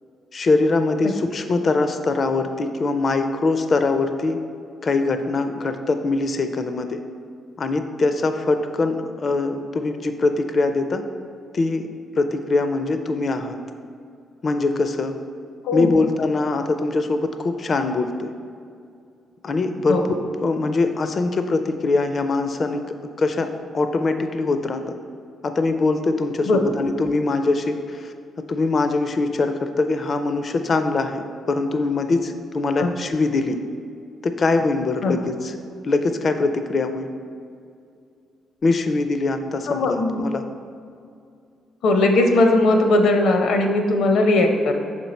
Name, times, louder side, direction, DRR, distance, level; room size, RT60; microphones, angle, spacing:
voice 1, 0.3-4.4 4.8-7.0 7.6-11.0 11.5-11.9 12.2-13.6 14.4-15.2 15.7-18.3 19.4-20.0 20.4-22.8 23.2-24.8 25.4-28.1 28.5-33.6 34.2-35.6 35.8-37.1 38.6-40.4, left 3 dB, 45° left, 8 dB, 0.4 m, -22 dB
voice 2, 15.6-16.0 19.9-20.0 26.5-26.6 32.8-32.9 35.0-35.1 39.7-40.2 41.8-44.7, left 2 dB, 75° left, 4 dB, 0.7 m, -18 dB
6.0 x 4.5 x 4.1 m, 2.4 s
cardioid pair, 90°, 0 cm